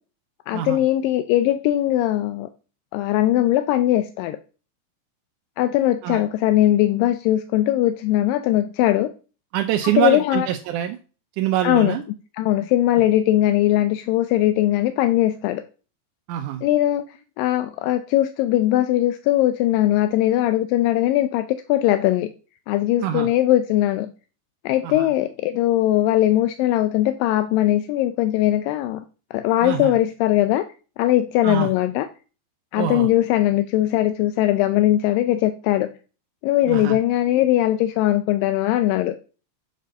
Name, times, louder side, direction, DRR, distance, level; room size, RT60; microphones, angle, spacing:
voice 1, 0.5-2.5 2.9-4.4 5.6-9.1 10.0-10.5 11.6-12.0 12.4-15.6 16.6-22.3 22.7-24.1 24.6-29.0 29.3-30.7 31.0-32.1 32.7-35.9 36.4-39.2, left 14 dB, 85° left, 9 dB, 2.3 m, -20 dB
voice 2, 9.5-11.0 11.4-12.0 16.3-16.6 23.0-23.3 24.8-25.1 29.6-30.0 31.4-31.7 32.8-33.1 36.7-37.0, right 12 dB, 75° right, 4 dB, 2.1 m, -24 dB
7.9 x 5.3 x 6.5 m, 0.36 s
omnidirectional pair, 4.0 m